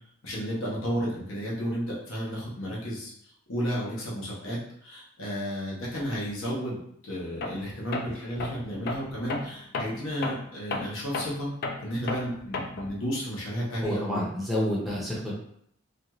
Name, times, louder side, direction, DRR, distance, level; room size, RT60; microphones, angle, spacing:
voice 1, 0.2-3.1 3.5-11.5 11.8-14.2, equal, 65° left, -5 dB, 0.9 m, -32 dB
Tools, 7.4-7.7 7.9-13.0, left 3 dB, 50° left, 0.3 m, -34 dB
voice 2, 13.8-15.4, equal, ahead, -6 dB, 0.6 m, -29 dB
2.5 x 2.3 x 2.9 m, 0.70 s
head